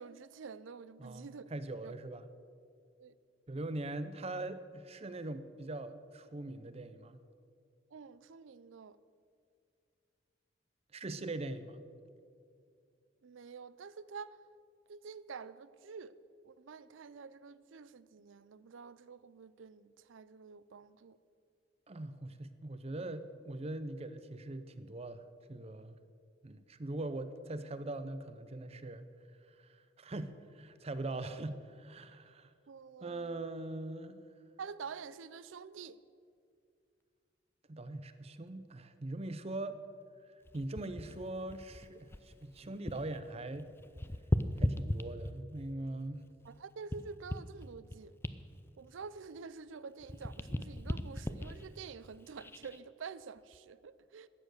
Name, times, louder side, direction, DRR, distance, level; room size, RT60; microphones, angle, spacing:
voice 1, 0.0-1.4 1.8-1.9 3.0-3.1 7.9-9.0 13.2-14.4 14.9-16.2 16.4-21.2 32.7-33.5 34.6-36.0 46.4-48.2 48.8-54.3, right 5 dB, 75° right, 0.5 m, -48 dB
voice 2, 1.0-2.2 3.5-7.2 10.9-11.8 21.9-25.2 25.5-26.0 26.4-29.0 30.0-32.5 33.0-34.2 37.7-39.8 40.5-43.7 44.6-46.2, right 2 dB, 30° right, 0.6 m, -41 dB
sound 1, 40.5-43.2 43.5-45.6 46.2-49.7 50.0-52.8 53.4-53.6, left 1 dB, 10° left, 0.4 m, -38 dB
13.0 x 8.9 x 6.5 m
head